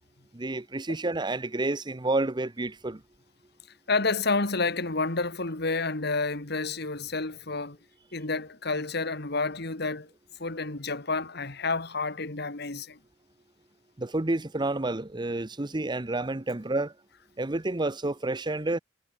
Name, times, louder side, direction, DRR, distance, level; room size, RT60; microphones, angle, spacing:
voice 1, 0.3-3.0 14.0-16.9 17.4-18.8, right 2 dB, 25° right, 0.9 m, -29 dB
voice 2, 3.9-7.8 8.1-10.1 10.4-13.0, left 3 dB, 60° left, 2.4 m, -29 dB
head